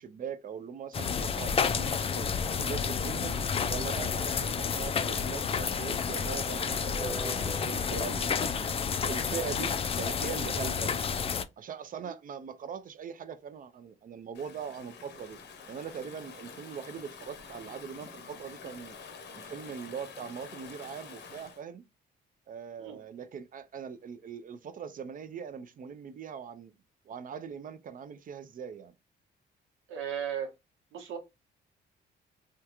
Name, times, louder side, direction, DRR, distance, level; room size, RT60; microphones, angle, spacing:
voice 1, 0.0-2.3 2.5-3.4 3.7-10.9 11.6-15.4 15.7-19.0 19.3-21.9 22.5-26.7 27.1-28.9, right 7 dB, 45° right, 0.5 m, -41 dB
sound 1, 0.9-11.4, left 6 dB, 30° left, 0.3 m, -30 dB
sound 2, 3.0-8.0, equal, 15° right, 1.1 m, -45 dB
Stream / Ocean, 14.3-21.6, left 5 dB, 65° left, 0.7 m, -48 dB
voice 2, 29.9-30.5 30.9-31.2, right 8 dB, 85° right, 1.0 m, -36 dB
3.5 x 2.3 x 2.9 m
cardioid pair, 90°, 20 cm